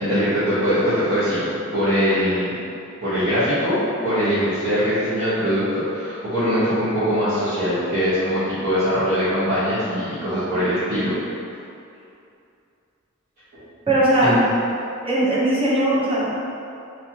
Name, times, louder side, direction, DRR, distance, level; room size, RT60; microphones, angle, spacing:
voice 1, 0.0-2.5 3.0-11.1 13.5-13.6 14.2-14.4, equal, 45° right, -18 dB, 1.3 m, -22 dB
voice 2, 13.9-14.4 15.0-16.3, right 1 dB, 25° right, -8 dB, 0.8 m, -19 dB
3.5 x 3.2 x 2.9 m, 2.6 s
head